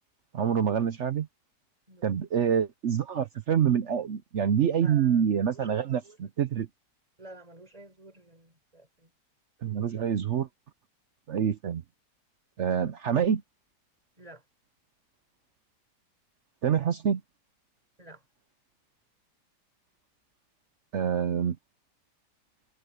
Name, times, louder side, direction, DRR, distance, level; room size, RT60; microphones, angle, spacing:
voice 1, 0.3-1.3 2.0-6.7 9.6-10.5 11.3-11.8 12.6-13.4 16.6-17.2 20.9-21.6, right 8 dB, 60° right, 0.8 m, -26 dB
voice 2, 4.8-6.2 7.2-9.1 14.2-14.4 18.0-18.3, right 1 dB, 20° right, 5.3 m, -51 dB
omnidirectional pair, 1.8 m